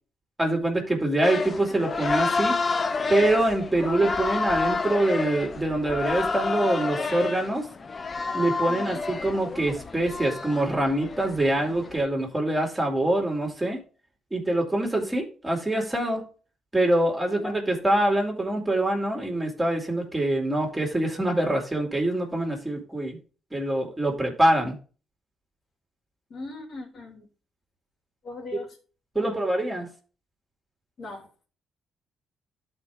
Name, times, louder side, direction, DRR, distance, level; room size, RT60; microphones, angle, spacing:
voice 1, 0.4-2.6 3.1-7.7 8.3-13.8 14.3-16.2 16.7-23.2 23.5-24.8 29.1-29.9, right 1 dB, 15° right, 2.4 m, -25 dB
sound 1, 1.2-12.0, left 4 dB, 35° left, 0.6 m, -29 dB
voice 2, 8.7-9.1 17.3-17.6 26.3-27.3 28.2-28.8 29.1-29.4 31.0-31.3, left 2 dB, 60° left, 3.1 m, -39 dB
12.0 x 4.5 x 3.5 m
cardioid pair, 90°, 0 cm